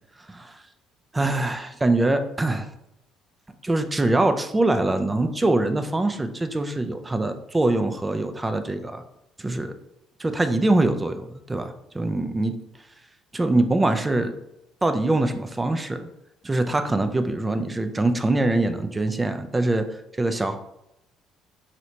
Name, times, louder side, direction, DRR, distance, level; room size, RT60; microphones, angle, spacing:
voice 1, 0.3-0.6 1.1-2.7 3.6-9.0 9.4-9.7 10.2-12.6 13.3-14.3 14.8-16.1 16.4-19.9 20.2-20.6, right 2 dB, 20° right, 8 dB, 0.4 m, -23 dB
3.2 x 2.6 x 2.8 m, 0.85 s
supercardioid pair, 80°, 0 cm